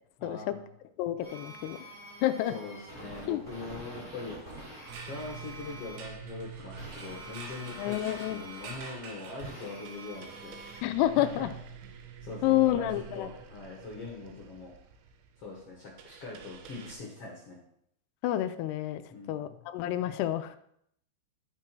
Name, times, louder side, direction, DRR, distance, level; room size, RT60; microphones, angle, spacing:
voice 1, 0.2-0.6 2.5-4.4 5.1-8.0 8.3-10.6 11.2-11.4 12.2-14.7 15.4-17.6 19.1-19.6, left 3 dB, 55° left, -3 dB, 1.6 m, -42 dB
voice 2, 1.0-1.8 2.2-2.5 3.3-3.4 7.8-8.4 10.8-11.5 12.4-13.3 18.2-19.0 19.3-20.6, left 13 dB, 85° left, 8 dB, 2.4 m, -29 dB
sound 1, 1.2-6.0 6.8-8.8 9.4-10.8, right 1 dB, 15° right, 3.0 m, -46 dB
sound 2, 4.4-10.1, right 3 dB, 70° right, 3.5 m, -48 dB
sound 3, 4.8-17.0, right 7 dB, 85° right, 3.3 m, -48 dB
11.5 x 6.0 x 4.6 m, 0.70 s
omnidirectional pair, 5.4 m